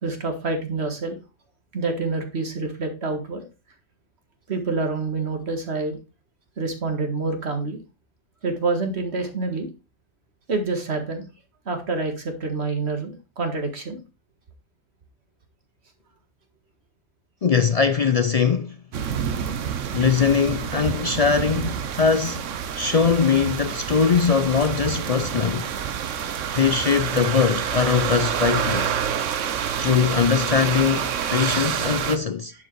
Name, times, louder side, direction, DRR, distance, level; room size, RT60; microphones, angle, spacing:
voice 1, 0.0-1.2 1.7-3.4 4.5-6.0 6.6-7.8 8.4-9.7 10.5-11.3 11.7-14.0, right 3 dB, 60° right, 2.1 m, -27 dB
voice 2, 17.4-18.8 19.9-22.5 22.8-25.7 26.5-28.9 29.8-32.5, left 6 dB, 55° left, 0.4 m, -21 dB
sound 1, 18.9-32.2, right 8 dB, 90° right, 1.2 m, -27 dB
10.5 x 5.0 x 4.6 m
omnidirectional pair, 1.3 m